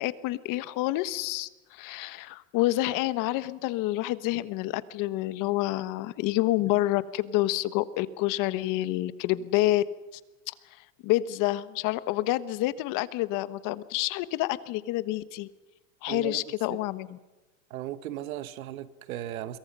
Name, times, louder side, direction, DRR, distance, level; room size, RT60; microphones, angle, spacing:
voice 1, 0.0-9.8 11.0-15.5 16.0-17.2, left 16 dB, 50° left, 1.3 m, -28 dB
voice 2, 16.1-16.8 17.7-19.6, right 12 dB, 85° right, 1.5 m, -37 dB
28.0 x 23.0 x 5.6 m
supercardioid pair, 125°, 40 cm